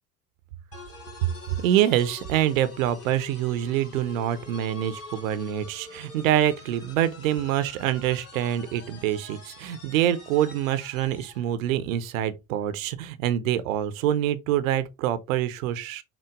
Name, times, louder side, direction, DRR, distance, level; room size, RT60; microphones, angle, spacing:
sound 1, 0.7-11.5, left 4 dB, 35° left, 1.9 m, -45 dB
voice 1, 1.5-16.0, right 11 dB, 70° right, 0.6 m, -25 dB
5.9 x 2.3 x 3.4 m
figure-of-eight pair, 60°, 42 cm